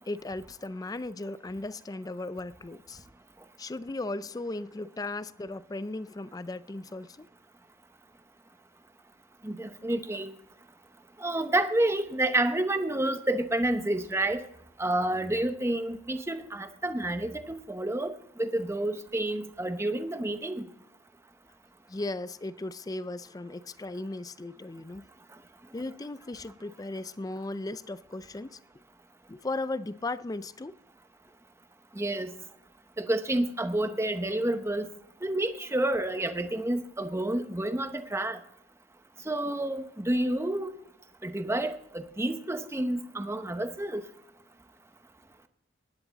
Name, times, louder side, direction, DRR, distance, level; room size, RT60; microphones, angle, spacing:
voice 1, 0.1-3.1 3.6-7.3 21.9-25.1 25.7-28.6 29.3-30.8, left 2 dB, 20° left, 0.4 m, -36 dB
voice 2, 9.4-10.3 11.2-14.4 14.8-18.1 18.4-20.6 32.0-32.3 33.0-34.9 35.2-38.4 39.3-40.7 41.2-44.0, right 1 dB, 15° right, 0.8 m, -29 dB
15.5 x 10.5 x 4.0 m
head